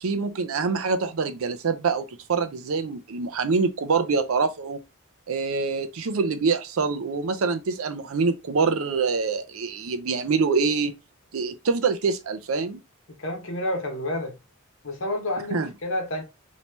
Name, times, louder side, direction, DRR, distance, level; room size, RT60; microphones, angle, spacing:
voice 1, 0.0-4.8 5.3-11.0 11.3-12.8 15.5-15.7, right 4 dB, 85° right, 0.5 m, -25 dB
voice 2, 13.1-14.4 14.8-16.2, left 1 dB, 70° left, 1.0 m, -29 dB
3.0 x 2.8 x 3.2 m
head